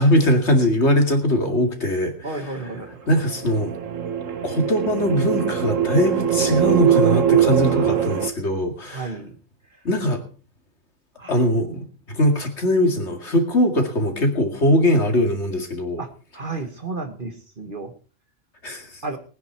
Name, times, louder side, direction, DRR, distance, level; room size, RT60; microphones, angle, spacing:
voice 1, 0.0-2.4 3.1-3.7 4.4-9.2 9.8-10.2 11.3-11.9 12.1-16.0 18.6-19.0, equal, 60° left, 4 dB, 2.6 m, -21 dB
voice 2, 2.2-2.9 7.6-8.1 8.9-9.4 11.2-11.4 16.0-17.9 19.0-19.2, right 3 dB, 40° right, 7 dB, 1.7 m, -32 dB
sound 1, 3.2-8.3, right 8 dB, 75° right, 1.5 m, -21 dB
20.0 x 9.8 x 4.5 m, 0.38 s
omnidirectional pair, 1.3 m